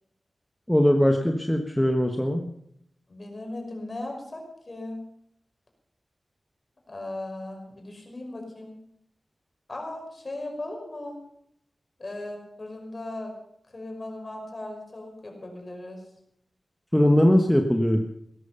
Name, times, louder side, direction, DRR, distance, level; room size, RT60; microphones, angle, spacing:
voice 1, 0.7-2.5 16.9-18.0, equal, 5° left, 4 dB, 1.3 m, -20 dB
voice 2, 3.1-5.0 6.9-8.7 9.7-11.2 12.0-13.3 13.7-16.0, left 2 dB, 40° left, 2 dB, 5.5 m, -37 dB
17.0 x 14.0 x 5.7 m, 0.73 s
wide cardioid pair, 85°, 0 cm